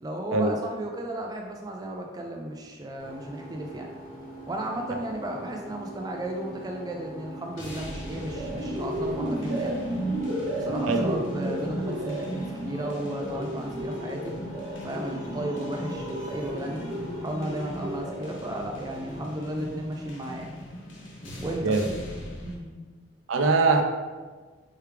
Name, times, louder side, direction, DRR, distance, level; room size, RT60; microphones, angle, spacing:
voice 1, 0.0-3.9 4.5-9.7 10.5-14.4 14.8-16.8 17.2-20.5 21.4-21.8 22.4-22.8, right 1 dB, 20° right, 1 dB, 0.3 m, -34 dB
boat in water goin, 3.0-21.3, right 2 dB, 40° left, 1.3 m, -44 dB
sound 1, 7.6-22.5, left 1 dB, 70° left, 1.0 m, -41 dB
sound 2, 8.0-18.5, right 1 dB, 70° right, 1.1 m, -33 dB
voice 2, 23.3-23.8, right 3 dB, 90° right, 4 dB, 0.5 m, -21 dB
4.6 x 3.2 x 3.3 m, 1.4 s
head